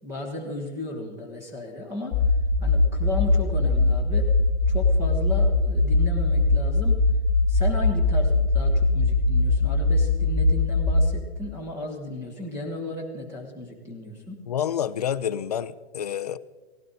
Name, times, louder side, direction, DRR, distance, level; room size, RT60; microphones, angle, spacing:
voice 1, 0.0-2.2 2.6-4.3 4.7-7.0 7.5-14.4, left 1 dB, 10° right, 0 dB, 1.3 m, -34 dB
sound 1, 2.1-11.0, left 2 dB, 25° left, 1.3 m, -21 dB
voice 2, 14.5-16.4, left 9 dB, 40° left, 14 dB, 0.5 m, -28 dB
18.0 x 16.5 x 4.0 m, 1.3 s
hypercardioid pair, 180°, 32 cm